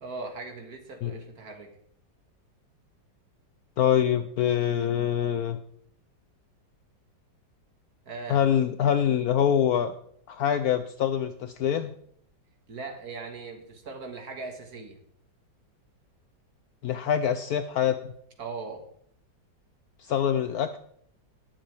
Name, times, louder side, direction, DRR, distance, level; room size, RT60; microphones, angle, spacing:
voice 1, 0.0-1.7 8.1-8.4 12.7-15.0 18.4-18.8, right 4 dB, 55° right, 4 dB, 2.1 m, -39 dB
voice 2, 3.8-5.6 8.3-9.9 10.3-11.9 16.8-18.1 20.0-20.8, left 9 dB, 70° left, 10 dB, 0.9 m, -25 dB
19.0 x 7.1 x 3.4 m, 0.66 s
omnidirectional pair, 2.0 m